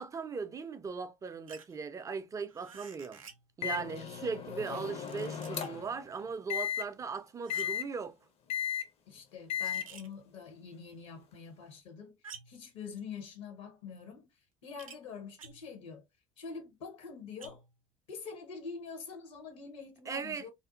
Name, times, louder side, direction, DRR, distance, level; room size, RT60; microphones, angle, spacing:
voice 1, 0.0-3.2 3.6-8.2 20.1-20.5, right 5 dB, 20° right, 0.4 m, -38 dB
sound 1, 1.5-1.8 2.5-3.5 4.7-5.9 7.4-7.9 9.6-10.1 12.2-12.7 14.8-15.0 15.4-15.8 17.4-17.8, right 5 dB, 85° right, 0.4 m, -51 dB
Microwave oven, 3.6-5.9 6.5-6.8 7.5-7.8 8.5-8.9 9.5-9.8, left 9 dB, 35° left, 0.5 m, -35 dB
voice 2, 4.6-5.0 9.1-12.1 12.5-14.3 14.6-16.1 16.4-17.6 18.1-20.5, left 5 dB, 65° left, 0.8 m, -45 dB
2.5 x 2.3 x 2.4 m
figure-of-eight pair, 60°, 17 cm